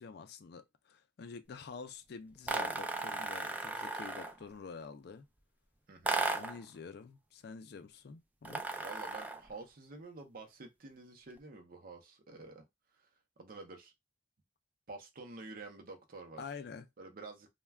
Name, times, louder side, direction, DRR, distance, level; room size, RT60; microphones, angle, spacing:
voice 1, 0.0-5.3 6.3-8.6 16.4-16.9, left 5 dB, 60° left, 0.4 m, -48 dB
sound 1, 2.5-4.4 6.0-6.6 8.4-9.5, right 2 dB, 10° right, 0.3 m, -36 dB
voice 2, 5.9-6.2 8.8-12.6 13.0-13.1 13.4-13.9 14.9-16.4 17.0-17.5, right 3 dB, 50° right, 0.6 m, -49 dB
2.3 x 2.2 x 3.3 m
head